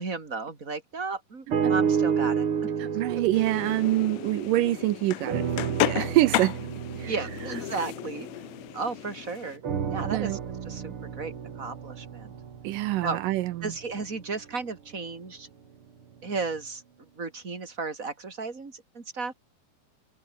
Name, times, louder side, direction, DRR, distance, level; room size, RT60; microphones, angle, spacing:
voice 1, 0.0-2.5 2.8-3.2 7.0-8.3 8.7-10.4 10.7-12.3 13.0-13.2 13.6-15.5 16.2-16.8 17.2-19.3, right 4 dB, 25° right, 3.1 m, -34 dB
sound 1, 1.5-4.9 5.3-9.0 9.6-13.9 14.5-14.6, right 7 dB, 40° right, 2.4 m, -31 dB
voice 2, 2.8-6.6 7.0-7.1 10.1-10.4 12.6-13.7, right 16 dB, 75° right, 2.2 m, -26 dB
sound 2, 3.3-9.6, left 21 dB, 80° left, 2.3 m, -33 dB
omnidirectional pair, 4.4 m